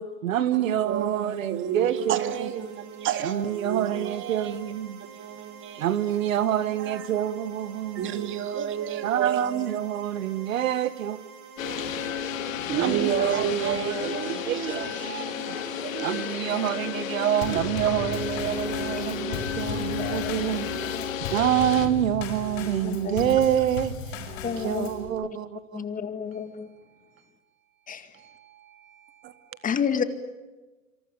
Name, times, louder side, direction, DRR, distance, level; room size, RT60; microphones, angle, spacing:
voice 1, 0.0-2.5 3.2-5.0 5.8-8.0 9.0-11.2 12.8-14.1 14.4-15.0 15.3-15.6 16.0-20.7 21.3-24.2 24.6-25.8 28.1-29.1, right 11 dB, 70° right, 1.7 m, -27 dB
voice 2, 0.6-4.6 5.0-6.0 6.8-7.1 8.0-9.8 11.6-12.0 12.4-16.3 16.6-16.7 17.5-17.6 29.2-29.3, right 8 dB, 30° right, 2.7 m, -31 dB
sound 1, 0.6-13.3, right 5 dB, 45° right, 7.1 m, -49 dB
sound 2, 11.6-21.9, left 8 dB, 70° left, 3.4 m, -32 dB
Drum kit / Snare drum / Bass drum, 17.4-25.1, left 2 dB, 50° left, 7.4 m, -36 dB
voice 3, 19.0-20.6 20.8-21.1 22.8-23.4 24.4-24.9 25.7-26.7 27.9-28.1 29.6-30.0, left 7 dB, 20° left, 2.1 m, -31 dB
28.0 x 26.5 x 7.0 m
hypercardioid pair, 120°, 41 cm